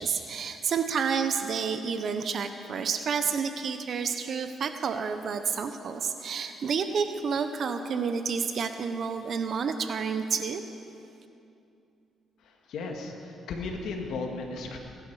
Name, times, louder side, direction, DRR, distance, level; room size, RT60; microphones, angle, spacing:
voice 1, 0.0-10.6, right 6 dB, 55° right, 8 dB, 0.8 m, -30 dB
voice 2, 12.4-14.8, left 3 dB, 75° left, 1 dB, 1.9 m, -35 dB
20.0 x 11.0 x 4.9 m, 2.6 s
cardioid pair, 90°, 0 cm